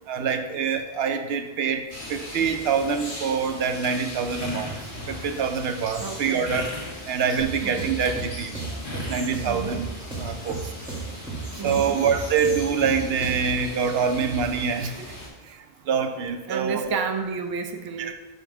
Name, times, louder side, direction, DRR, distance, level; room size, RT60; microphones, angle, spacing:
voice 1, 0.1-1.8 2.1-4.8 5.1-6.6 7.1-8.5 9.1-9.9 10.2-10.6 11.6-14.9 15.9-17.0 18.0-18.1, right 6 dB, 75° right, 7 dB, 0.9 m, -25 dB
sound 1, 1.9-15.3, left 1 dB, 55° left, 1.8 m, -37 dB
voice 2, 6.0-6.5 7.6-8.0 9.5-9.8 11.6-12.1 16.5-18.1, right 5 dB, 35° right, 5 dB, 0.4 m, -31 dB
sound 2, 7.4-13.6, right 3 dB, 5° right, 1.7 m, -36 dB
5.5 x 5.1 x 5.8 m, 1.1 s
omnidirectional pair, 1.0 m